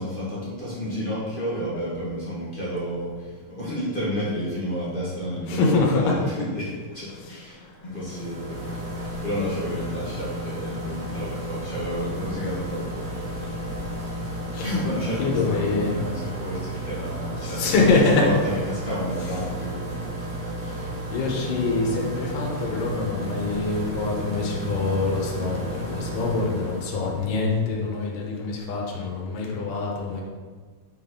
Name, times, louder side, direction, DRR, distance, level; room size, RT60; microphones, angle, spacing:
voice 1, 0.0-8.7 9.2-13.6 14.0-14.1 14.6-17.9 18.1-19.8, equal, 25° left, -8 dB, 1.1 m, -31 dB
voice 2, 5.5-6.2 14.5-14.7 15.2-15.9 17.4-18.3 21.1-30.2, left 3 dB, 80° left, -2 dB, 2.7 m, -24 dB
sound 1, 7.9-27.3, right 1 dB, 80° right, 0.7 m, -33 dB
6.4 x 6.1 x 3.8 m, 1.5 s
omnidirectional pair, 3.8 m